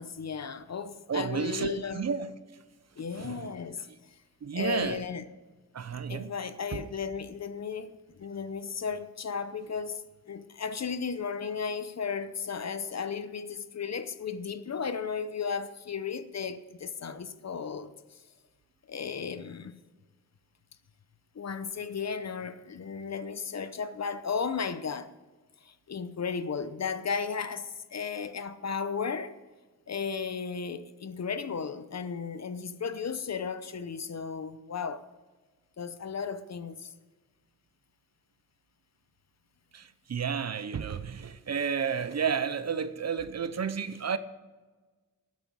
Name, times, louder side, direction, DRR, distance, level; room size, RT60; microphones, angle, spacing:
voice 1, 0.0-2.0 3.0-3.9 4.5-5.2 6.1-17.9 18.9-19.8 21.3-25.1 25.6-29.3 29.9-35.0 35.8-36.9, left 6 dB, 50° left, 0.8 m, -35 dB
voice 2, 1.1-2.3 3.2-3.5 4.4-5.0 5.7-6.3 6.7-6.8 39.7-44.2, right 6 dB, 50° right, 0.7 m, -31 dB
12.5 x 9.4 x 6.3 m
wide cardioid pair, 150°, 34 cm